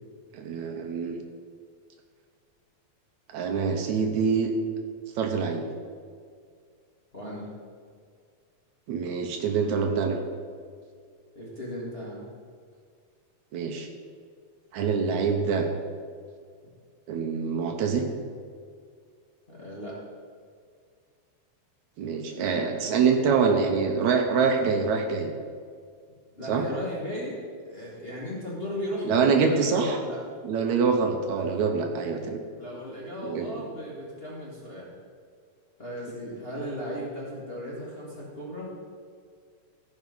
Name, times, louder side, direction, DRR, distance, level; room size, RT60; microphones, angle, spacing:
voice 1, 0.3-1.2 3.3-4.5 5.2-5.6 8.9-10.2 13.5-13.9 14.7-15.7 17.1-18.1 22.0-25.3 26.5-26.6 29.1-30.0 30.4-32.4 33.2-33.5, right 5 dB, 75° right, 4 dB, 2.0 m, -25 dB
voice 2, 7.1-7.5 11.3-12.3 19.5-20.0 22.3-23.2 26.4-30.2 32.6-34.9 35.8-38.7, equal, 25° left, -6 dB, 1.6 m, -36 dB
14.5 x 5.4 x 5.4 m, 2.1 s
omnidirectional pair, 3.5 m